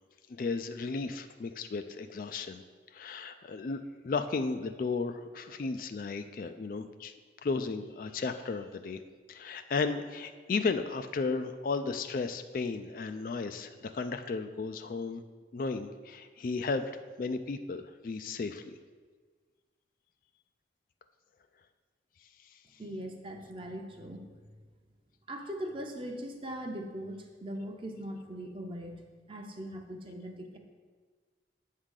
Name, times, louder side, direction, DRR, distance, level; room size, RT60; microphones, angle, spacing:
voice 1, 0.3-2.6 2.9-7.1 7.4-9.0 9.3-15.2 15.5-18.6, left 4 dB, 50° left, 9 dB, 0.3 m, -34 dB
voice 2, 22.8-24.3 25.3-30.6, equal, 30° right, 3 dB, 0.7 m, -40 dB
8.0 x 3.8 x 6.5 m, 1.5 s
head